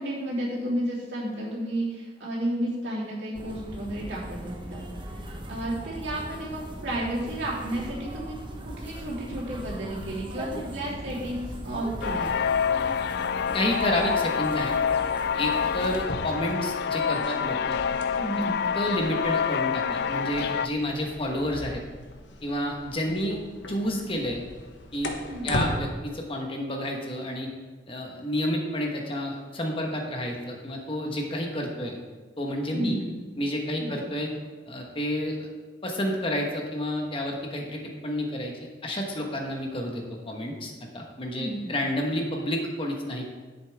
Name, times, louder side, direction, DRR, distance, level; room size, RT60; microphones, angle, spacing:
voice 1, 0.0-4.8 5.1-12.3 18.1-18.5 23.0-23.2 25.3-25.5 32.7-33.1 33.8-33.9 41.4-41.7, right 1 dB, 65° right, -6 dB, 3.3 m, -32 dB
sound 1, 3.3-16.0, right 1 dB, 25° right, 1.0 m, -39 dB
sound 2, 12.0-20.7, left 7 dB, 60° left, 0.3 m, -27 dB
voice 2, 13.5-14.8 15.4-17.8 18.7-21.8 22.4-23.4 23.7-24.4 24.9-25.1 25.4-27.5 27.9-32.0 32.4-33.0 33.4-34.3 34.7-35.5 35.8-43.3, left 1 dB, 30° left, 0 dB, 1.2 m, -30 dB
sound 3, 15.7-25.8, left 1 dB, 80° left, 1.0 m, -38 dB
10.5 x 8.2 x 3.5 m, 1.3 s
head